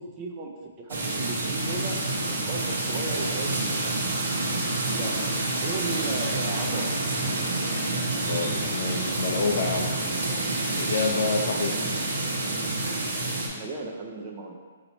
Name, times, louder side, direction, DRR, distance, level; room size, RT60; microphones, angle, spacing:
voice 1, 0.0-2.0 2.3-4.2 5.0-7.0 12.4-12.6 13.5-14.5, right 3 dB, 20° right, 0 dB, 0.4 m, -36 dB
sound 1, 0.9-13.5, right 2 dB, 90° right, 1.0 m, -28 dB
voice 2, 8.3-9.9 10.8-11.9, left 4 dB, 55° left, 2 dB, 0.5 m, -28 dB
4.1 x 2.8 x 4.2 m, 1.5 s
hypercardioid pair, 170°, 0 cm